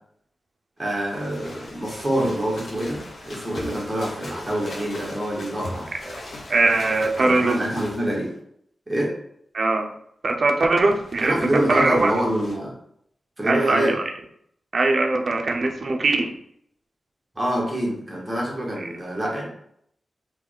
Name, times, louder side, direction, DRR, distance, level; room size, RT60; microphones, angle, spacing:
sound 1, 0.8-8.3 10.6-12.6, left 1 dB, 75° left, 1.0 m, -40 dB
voice 1, 0.8-5.9 7.2-8.3 8.9-9.1 11.2-12.7 13.4-14.0 17.3-19.5, right 1 dB, 15° right, -3 dB, 1.2 m, -26 dB
voice 2, 6.5-7.6 9.5-9.9 10.2-12.1 13.5-14.0 14.7-16.3, right 2 dB, 50° right, 4 dB, 0.5 m, -21 dB
3.5 x 3.0 x 3.9 m, 0.68 s
wide cardioid pair, 150°, 0 cm